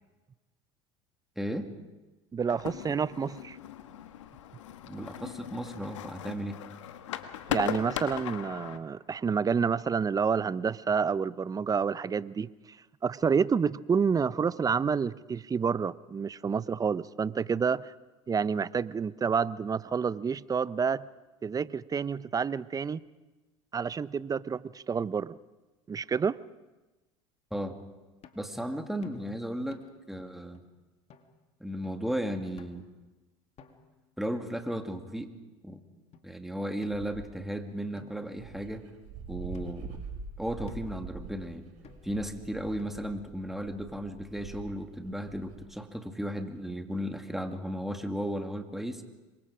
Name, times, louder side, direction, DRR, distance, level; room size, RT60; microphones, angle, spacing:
voice 1, 1.4-1.7 4.8-6.6 27.5-27.7 28.4-29.8 30.1-30.6 31.6-32.8 34.2-35.3 35.6-35.8 36.2-38.9 39.3-40.0 40.4-41.7 42.0-49.0, equal, ahead, 5 dB, 2.4 m, -35 dB
voice 2, 2.3-3.6 7.5-12.5 13.0-17.9 18.3-21.1 21.4-23.0 23.7-25.4 25.9-26.4, right 6 dB, 25° right, 18 dB, 0.6 m, -29 dB
sound 1, 2.5-8.8, left 11 dB, 85° left, 1.4 m, -38 dB
sound 2, 28.2-28.5 29.0-29.3 29.7-30.1 30.5-30.6 31.1-31.3 31.8-32.1 32.6-32.9 33.6-34.0 34.7-35.4 36.1-36.2 36.8-37.5 38.0-39.0 39.5-40.0 40.7-41.0 41.8-42.3 42.8-43.3, left 5 dB, 45° left, 2.3 m, -55 dB
Dog, 36.9-37.5 38.1-38.2 38.3-45.7, right 4 dB, 60° right, 5.4 m, -44 dB
27.0 x 23.0 x 5.0 m, 1.1 s
hypercardioid pair, 85°, 15 cm